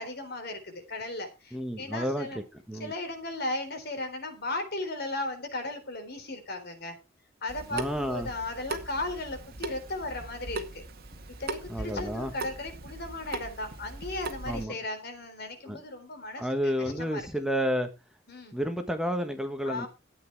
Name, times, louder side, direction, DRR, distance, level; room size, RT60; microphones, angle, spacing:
voice 1, 0.0-2.4 2.8-7.0 7.4-10.8 11.4-17.2 18.3-18.6 19.7-19.9, left 2 dB, 55° left, 3.6 m, -36 dB
voice 2, 1.5-2.3 2.7-2.9 7.7-8.3 11.7-12.3 14.5-14.8 15.7-15.8 16.4-17.9 18.5-19.9, equal, 5° right, 1.3 m, -30 dB
Water tap faucet / Sink (filling or washing) / Drip, 7.5-14.6, right 2 dB, 55° right, 2.0 m, -39 dB
13.5 x 8.7 x 4.6 m
head